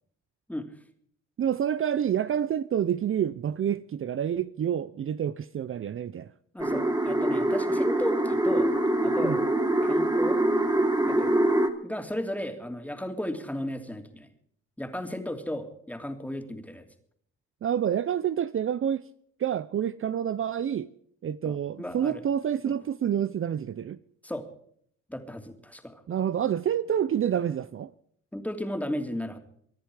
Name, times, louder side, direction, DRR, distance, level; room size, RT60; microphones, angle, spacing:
voice 1, 1.4-6.3 9.2-9.4 17.6-19.0 19.4-20.9 21.2-24.0 26.1-27.9, right 9 dB, 45° right, 0.7 m, -28 dB
voice 2, 6.5-8.7 9.0-9.4 9.8-10.4 11.1-11.3 11.8-14.3 14.8-16.8 21.4-22.2 22.6-22.7 24.2-24.5 25.1-26.0 28.3-29.4, left 1 dB, 5° left, 3.0 m, -34 dB
sound 1, 6.6-11.7, right 1 dB, 15° right, 2.9 m, -24 dB
24.5 x 10.5 x 4.9 m
cardioid pair, 90°, 30 cm